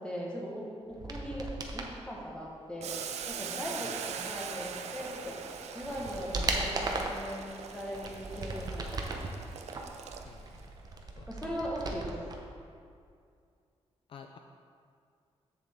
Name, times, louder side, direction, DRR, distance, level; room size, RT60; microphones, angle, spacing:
voice 1, 0.0-3.0 3.3-5.4 5.7-9.3 11.3-12.1, equal, 10° left, -3 dB, 1.2 m, -39 dB
sound 1, 0.9-1.9 5.0-5.1 5.6-7.3 7.8-9.3 9.7-12.4 12.6-12.7, right 3 dB, 35° right, 0.7 m, -36 dB
Boiling, 2.8-10.6, right 7 dB, 85° right, 0.5 m, -42 dB
Toilet flush, 3.3-10.5, right 1 dB, 55° right, 1.1 m, -56 dB
voice 2, 10.2-10.7 11.2-11.3 11.6-11.7 14.1-14.4, left 7 dB, 55° left, 4 dB, 0.4 m, -51 dB
7.7 x 7.1 x 3.6 m, 2.3 s
wide cardioid pair, 165°, 11 cm